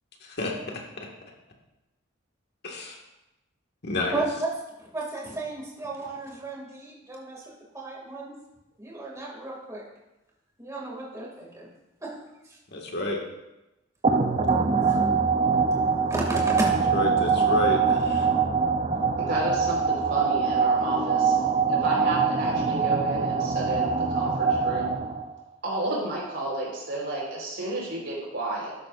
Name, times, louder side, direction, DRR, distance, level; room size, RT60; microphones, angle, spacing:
voice 1, 0.2-0.8 2.6-3.0 3.8-4.1 12.7-13.2 16.9-18.3, left 2 dB, 55° left, -1 dB, 1.9 m, -30 dB
voice 2, 4.1-4.5 4.8-8.3 8.8-9.9 10.6-11.7 12.0-12.2 12.4-12.6 14.9-15.0 16.1-16.7, right 2 dB, 15° right, -3 dB, 2.4 m, -33 dB
sound 1, 14.0-25.4, right 5 dB, 35° right, 0.6 m, -23 dB
voice 3, 19.2-21.3 21.7-24.9 25.6-28.8, right 1 dB, 65° right, -3 dB, 4.3 m, -31 dB
13.0 x 11.0 x 2.6 m, 0.99 s
head